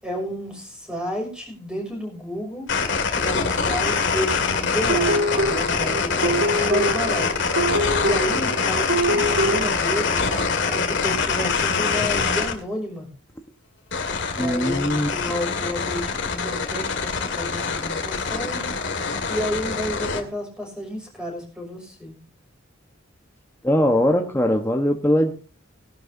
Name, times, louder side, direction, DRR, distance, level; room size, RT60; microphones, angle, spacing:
voice 1, 0.0-2.7 3.1-7.3 8.0-10.2 10.7-13.1 14.4-18.7 19.3-22.2, equal, 5° right, 0 dB, 6.3 m, -31 dB
sound 1, 2.7-12.5 13.9-20.2, left 5 dB, 60° left, 2.2 m, -24 dB
sound 2, 4.9-9.7, right 1 dB, 80° right, 2.2 m, -25 dB
voice 2, 14.4-15.1 23.6-25.3, equal, 10° left, 2 dB, 1.3 m, -20 dB
20.5 x 11.5 x 2.8 m, 0.39 s
head